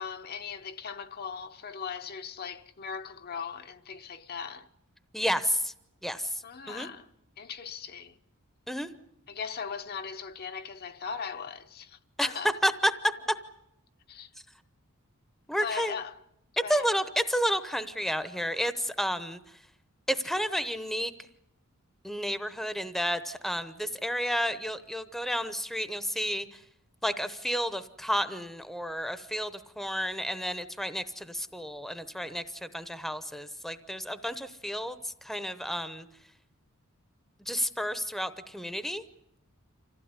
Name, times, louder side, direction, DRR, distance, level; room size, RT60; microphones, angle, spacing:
voice 1, 0.0-4.7 6.4-7.1 7.4-8.2 9.3-12.5 14.1-14.3 15.6-16.2 16.6-16.9, left 6 dB, 45° left, 0.9 m, -39 dB
voice 2, 5.1-5.7 6.0-6.9 8.7-8.9 12.2-12.3 12.6-12.9 15.5-16.0 16.7-19.4 20.1-21.1 22.0-26.6 27.0-36.1 37.5-39.0, equal, ahead, 0.8 m, -31 dB
26.0 x 16.0 x 9.8 m
head